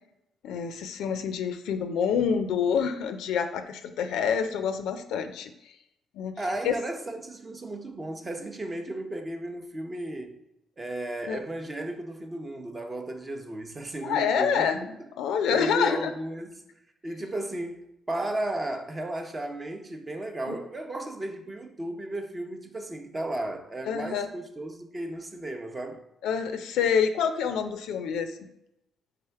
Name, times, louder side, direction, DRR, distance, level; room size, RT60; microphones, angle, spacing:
voice 1, 0.4-5.5 6.1-6.3 6.6-6.8 11.3-11.4 14.0-14.9 15.2-16.1 20.5-20.6 23.9-24.3 26.2-28.4, left 7 dB, 85° left, 0.3 m, -27 dB
voice 2, 6.4-10.4 10.8-14.7 15.0-15.1 15.5-16.7 17.0-26.0, right 1 dB, 25° right, 0.6 m, -34 dB
3.4 x 3.4 x 4.4 m
cardioid pair, 90°, 0 cm